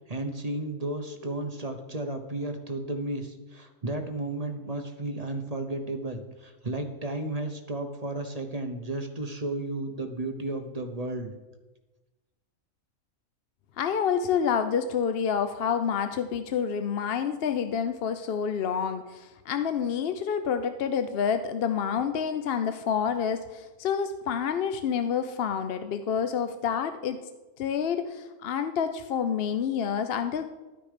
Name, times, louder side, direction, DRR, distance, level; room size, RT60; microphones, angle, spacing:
voice 1, 0.1-11.3, right 2 dB, 35° right, 5 dB, 0.8 m, -33 dB
voice 2, 13.8-27.2 27.6-30.4, left 7 dB, 60° left, 9 dB, 0.7 m, -28 dB
12.0 x 9.5 x 5.0 m, 1.2 s
omnidirectional pair, 1.5 m